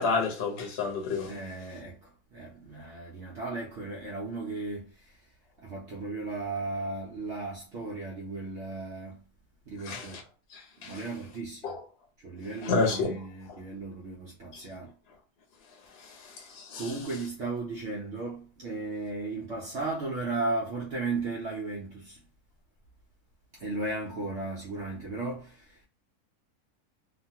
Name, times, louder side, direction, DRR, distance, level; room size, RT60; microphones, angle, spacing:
voice 1, 0.0-1.3 9.9-10.2 10.5-10.9 11.6-11.8 12.6-13.1 16.5-16.9, left 4 dB, 50° left, 1.0 m, -29 dB
voice 2, 1.3-5.2 5.6-9.2 9.7-10.2 10.8-11.8 12.2-14.9 16.0-16.1 16.8-22.2 23.5-25.9, right 3 dB, 60° right, 0.9 m, -35 dB
2.9 x 2.2 x 2.7 m
omnidirectional pair, 1.4 m